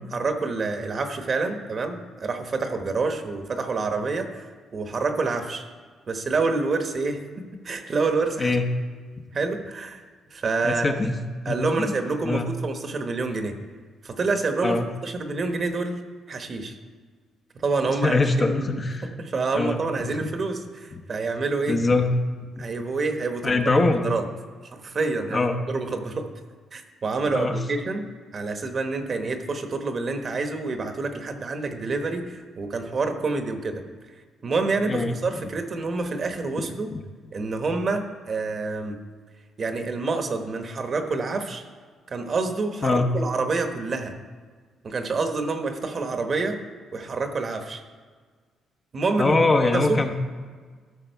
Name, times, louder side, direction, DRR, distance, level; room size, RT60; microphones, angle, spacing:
voice 1, 0.1-4.5 4.7-5.6 6.1-8.5 9.3-10.0 10.3-11.0 11.4-13.6 14.0-16.0 16.3-16.8 17.5-18.7 19.0-21.8 22.6-24.2 24.7-26.3 26.7-33.8 34.4-36.9 37.3-39.0 39.6-41.6 42.1-44.2 44.8-46.6 46.9-47.8 48.9-49.4 49.7-50.0, right 3 dB, 45° right, 6 dB, 1.1 m, -27 dB
voice 2, 10.6-11.1 11.5-11.9 12.2-12.5 14.6-14.9 17.8-19.1 19.5-19.8 20.2-20.3 20.9-21.0 21.7-22.1 22.4-22.5 23.4-24.0 25.3-25.6 27.3-27.5 34.9-35.2 36.6-37.0 42.8-43.1 49.2-50.2, left 3 dB, 30° left, 5 dB, 0.9 m, -23 dB
13.0 x 6.0 x 4.6 m, 1.5 s
cardioid pair, 90°, 0 cm